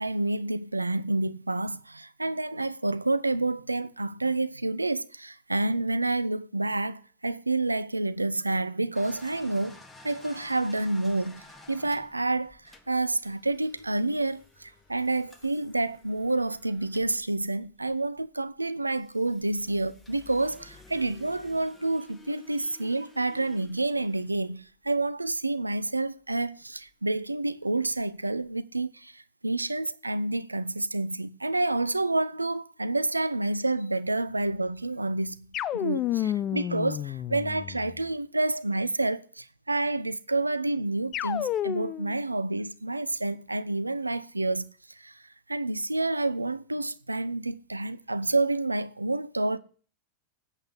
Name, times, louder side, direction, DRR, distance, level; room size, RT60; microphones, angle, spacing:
voice 1, 0.0-35.5 35.7-45.2 45.5-49.6, right 2 dB, 85° right, 0.5 m, -29 dB
sound 1, 8.9-18.3 18.9-24.9 26.3-26.4 26.8-26.9 28.0-28.1 28.3-28.5, left 2 dB, 10° left, 1.6 m, -53 dB
sound 2, 35.5-38.0 41.1-42.2, left 11 dB, 30° left, 0.4 m, -30 dB
8.4 x 8.0 x 8.3 m
figure-of-eight pair, 90°, 0 cm